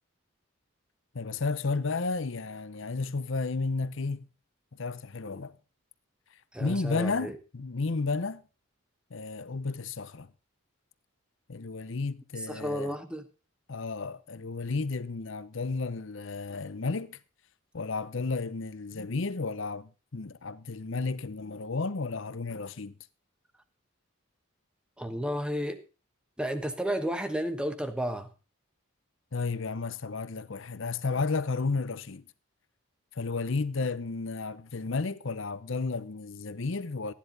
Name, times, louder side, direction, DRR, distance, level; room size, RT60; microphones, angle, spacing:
voice 1, 1.1-4.3 4.8-5.5 6.6-8.4 9.1-10.3 11.5-13.0 13.7-17.2 17.7-22.9 29.3-32.2 33.2-37.1, left 3 dB, 60° left, 0.7 m, -32 dB
voice 2, 6.5-7.4 12.4-13.3 25.0-25.8 26.4-28.3, equal, 5° right, 1.1 m, -32 dB
14.0 x 10.5 x 4.0 m
head